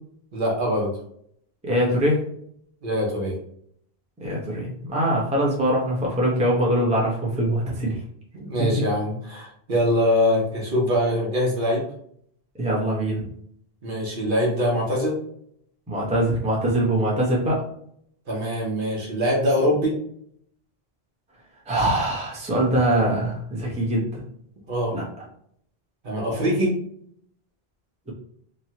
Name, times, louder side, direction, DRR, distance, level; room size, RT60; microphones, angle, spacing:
voice 1, 0.3-0.9 2.8-3.3 8.3-11.8 13.8-15.1 18.3-19.9 24.7-24.9 26.0-26.7, equal, 60° right, -3 dB, 1.0 m, -23 dB
voice 2, 1.6-2.2 4.2-8.0 8.6-8.7 12.6-13.3 15.9-17.6 21.7-24.2 24.9-25.0, right 1 dB, 10° right, -3 dB, 0.6 m, -23 dB
3.0 x 2.2 x 2.8 m, 0.67 s
omnidirectional pair, 1.0 m